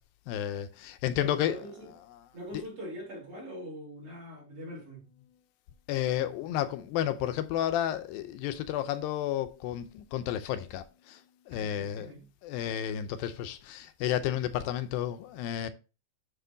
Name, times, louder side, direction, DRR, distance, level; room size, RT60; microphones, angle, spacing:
voice 1, 0.3-1.6 5.9-11.2 11.5-12.1 12.4-15.7, left 11 dB, 85° left, 2.4 m, -31 dB
voice 2, 1.2-1.9 2.3-5.1 11.5-12.3, equal, 40° right, 3.3 m, -43 dB
9.2 x 3.7 x 3.9 m
omnidirectional pair, 4.1 m